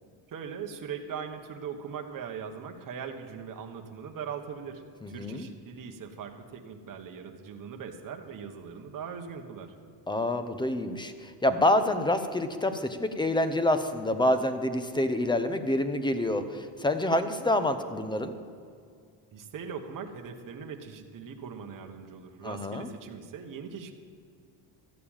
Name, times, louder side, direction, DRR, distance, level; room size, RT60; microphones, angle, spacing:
voice 1, 0.3-9.8 19.3-23.9, right 6 dB, 45° right, 4 dB, 1.2 m, -40 dB
voice 2, 5.0-5.5 10.1-18.3 22.4-22.9, left 1 dB, 10° left, 9 dB, 0.8 m, -27 dB
13.0 x 6.7 x 8.9 m, 2.3 s
cardioid pair, 130°, 46 cm